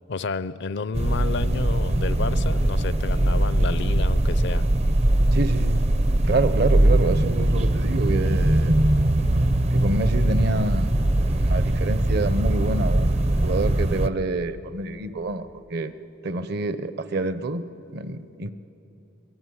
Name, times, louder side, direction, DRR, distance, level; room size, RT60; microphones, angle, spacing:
voice 1, 0.1-4.6, left 4 dB, 65° left, 15 dB, 0.5 m, -31 dB
sound 1, 0.9-14.1, right 1 dB, 35° right, 0.6 m, -21 dB
voice 2, 5.3-5.8 6.2-8.8 9.7-15.9 16.2-17.6 17.9-18.5, right 2 dB, 55° right, 12 dB, 0.9 m, -27 dB
23.0 x 22.5 x 9.6 m, 3.0 s
head